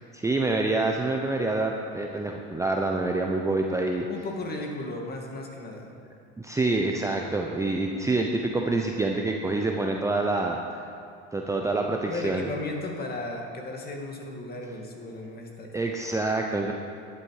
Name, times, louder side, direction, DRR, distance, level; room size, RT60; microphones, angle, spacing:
voice 1, 0.1-4.1 6.4-10.6 11.3-12.5 15.7-16.7, right 2 dB, 10° right, 1 dB, 0.8 m, -26 dB
voice 2, 4.1-5.9 12.0-15.7, left 2 dB, 30° left, 1 dB, 2.2 m, -35 dB
11.0 x 11.0 x 4.9 m, 2.6 s
supercardioid pair, 105°, 32 cm